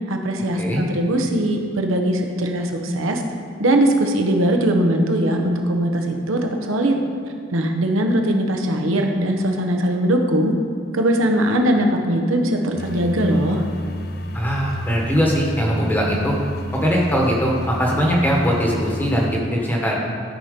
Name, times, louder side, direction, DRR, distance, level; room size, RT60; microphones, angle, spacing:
voice 1, 0.1-3.2 3.6-6.9 7.5-10.5 10.9-13.6, right 1 dB, 85° right, 3 dB, 0.9 m, -20 dB
sound 1, 12.8-19.4, left 1 dB, 50° left, 0.5 m, -31 dB
voice 2, 14.3-16.3 16.8-20.0, equal, 10° left, -2 dB, 1.2 m, -20 dB
13.0 x 4.4 x 5.1 m, 2.2 s
head